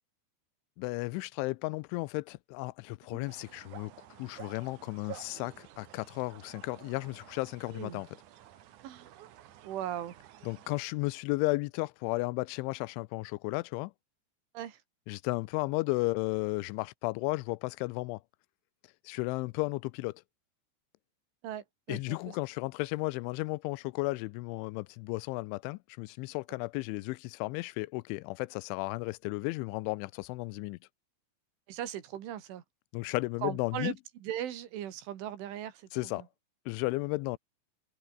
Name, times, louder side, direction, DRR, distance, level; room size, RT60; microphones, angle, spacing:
voice 1, 0.8-3.9 4.2-8.1 10.4-13.9 15.1-18.2 19.1-20.2 21.9-30.8 32.9-33.9 35.9-36.2 36.7-37.4, left 23 dB, 85° left, 3.0 m, -34 dB
sound 1, 3.3-10.9, right 12 dB, 70° right, 1.9 m, -52 dB
voice 2, 7.7-8.0 8.8-9.1 9.6-10.2 14.5-14.8 21.4-22.4 31.7-32.6 33.4-36.3, right 11 dB, 85° right, 4.8 m, -39 dB
omnidirectional pair, 5.4 m